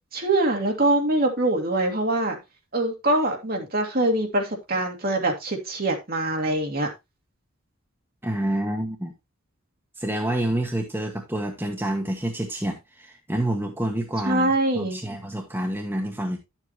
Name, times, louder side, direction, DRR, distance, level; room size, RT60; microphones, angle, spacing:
voice 1, 0.1-2.4 2.7-6.9 14.3-15.0, right 1 dB, 45° right, 2.2 m, -23 dB
voice 2, 8.2-9.1 10.0-16.4, right 1 dB, 10° right, 1.1 m, -28 dB
11.0 x 7.4 x 3.0 m
head